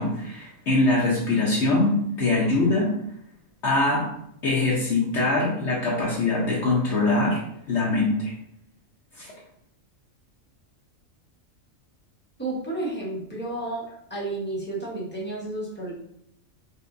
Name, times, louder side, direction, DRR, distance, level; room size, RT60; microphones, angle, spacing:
voice 1, 0.0-2.9 3.6-4.0 4.4-7.4 7.7-8.3 9.2-9.3, left 2 dB, 60° left, -4 dB, 1.0 m, -23 dB
voice 2, 12.4-13.8 14.1-15.9, right 2 dB, 10° left, -5 dB, 1.0 m, -31 dB
5.2 x 2.6 x 2.6 m, 0.74 s
omnidirectional pair, 1.4 m